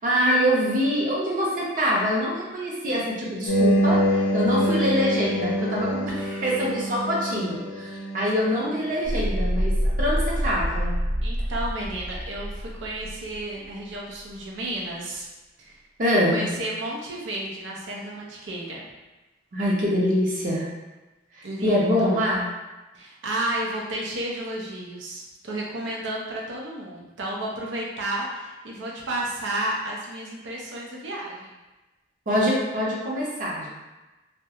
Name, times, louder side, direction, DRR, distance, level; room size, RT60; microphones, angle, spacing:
voice 1, 0.0-11.0 16.0-16.4 19.5-20.6 21.6-22.5 32.3-33.7, equal, 45° right, -5 dB, 0.6 m, -24 dB
sound 1, 3.5-9.0, equal, 90° left, 0.5 m, -25 dB
sound 2, 9.0-13.7, equal, 30° left, 0.3 m, -27 dB
voice 2, 11.2-15.3 15.6-15.8 16.1-18.9 21.4-22.2 22.9-31.6, right 1 dB, 90° right, -3 dB, 0.5 m, -32 dB
2.3 x 2.1 x 2.8 m, 1.1 s
head